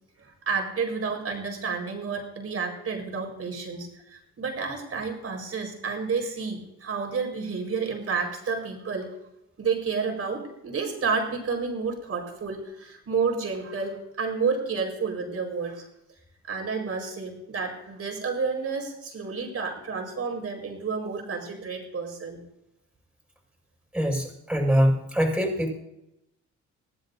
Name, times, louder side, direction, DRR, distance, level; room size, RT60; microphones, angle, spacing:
voice 1, 0.2-9.1 9.6-15.8 16.5-22.4, right 5 dB, 50° right, 2 dB, 4.7 m, -30 dB
voice 2, 23.9-25.7, equal, 5° right, -2 dB, 6.4 m, -23 dB
22.0 x 15.0 x 2.7 m, 0.84 s
cardioid pair, 90°, 30 cm